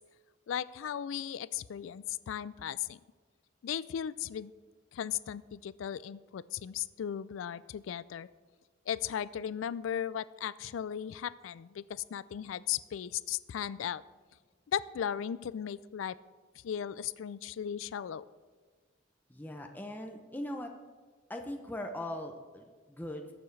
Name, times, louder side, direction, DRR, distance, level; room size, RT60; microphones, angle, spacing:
voice 1, 0.5-3.0 3.6-4.5 4.9-8.3 8.9-14.0 14.7-16.2 16.6-18.2, left 9 dB, 90° left, 18 dB, 0.3 m, -36 dB
voice 2, 19.3-20.7 21.3-23.3, left 1 dB, 10° left, 3 dB, 0.6 m, -40 dB
20.0 x 7.0 x 3.3 m, 1.4 s
head